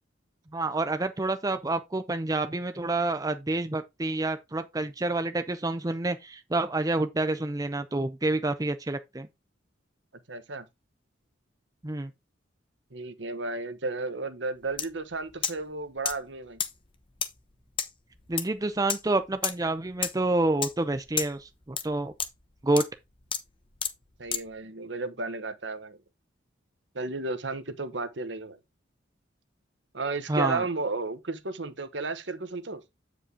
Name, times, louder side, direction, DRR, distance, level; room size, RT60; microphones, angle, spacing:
voice 1, 0.5-9.3 11.8-12.1 18.3-22.1 22.6-22.8 30.3-30.6, right 2 dB, 20° right, 0.6 m, -28 dB
voice 2, 10.3-10.6 12.9-16.6 24.2-26.0 26.9-28.6 29.9-32.8, right 3 dB, 65° right, 1.1 m, -33 dB
sound 1, 14.7-14.9 15.1-15.7 16.0-24.6, left 7 dB, 25° left, 0.9 m, -32 dB
8.3 x 5.1 x 3.7 m
head